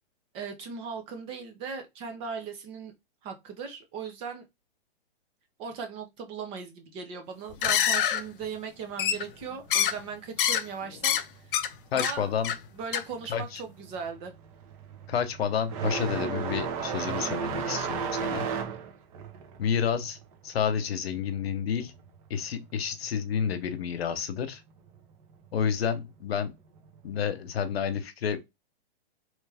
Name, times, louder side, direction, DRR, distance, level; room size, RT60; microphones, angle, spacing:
voice 1, 0.3-2.9 3.2-4.4 5.6-11.2 11.9-12.2 12.7-14.3, right 6 dB, 20° right, 0.5 m, -38 dB
sound 1, 7.5-8.2 9.0-9.4 9.7-10.0 10.4-10.6 11.0-11.2 11.5-11.7 12.0-12.1 12.4-12.6 12.9-13.0, left 9 dB, 60° left, 0.6 m, -25 dB
voice 2, 11.9-12.5 13.3-13.6 15.1-18.4 19.6-20.2 20.4-21.9 22.3-24.6 25.5-26.5 27.0-28.4, left 7 dB, 80° left, 1.0 m, -30 dB
sound 2, 13.1-13.4 13.7-22.1 22.4-23.4 24.4-24.5 25.3-25.4 27.1-27.3, right 6 dB, 35° right, 1.0 m, -34 dB
3.3 x 3.1 x 3.4 m
hypercardioid pair, 155°, 30 cm